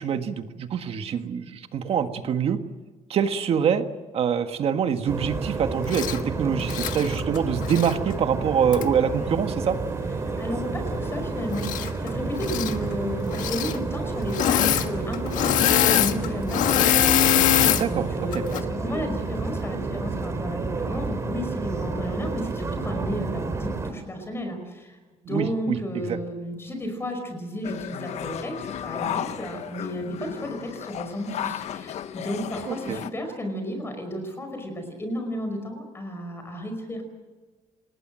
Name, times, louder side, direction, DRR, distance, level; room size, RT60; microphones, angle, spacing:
voice 1, 0.0-2.6 3.1-3.8 4.1-9.8 17.8-18.4 25.3-25.8 26.0-26.2 32.7-33.0, right 7 dB, 50° right, 7 dB, 1.7 m, -25 dB
sound 1, 5.1-23.9, right 3 dB, 25° right, 3.1 m, -30 dB
Engine / Mechanisms, 5.9-6.2 6.6-8.0 8.7-8.8 11.5-12.1 12.3-12.8 13.3-13.8 14.3-14.9 15.1-17.8 18.3-18.6, left 11 dB, 90° left, 1.5 m, -22 dB
voice 2, 10.2-25.0 25.3-37.0, equal, 20° left, 5 dB, 5.2 m, -33 dB
sound 2, 27.6-33.1, left 10 dB, 60° left, 1.2 m, -34 dB
27.5 x 20.0 x 7.7 m, 1.3 s
cardioid pair, 155°, 13 cm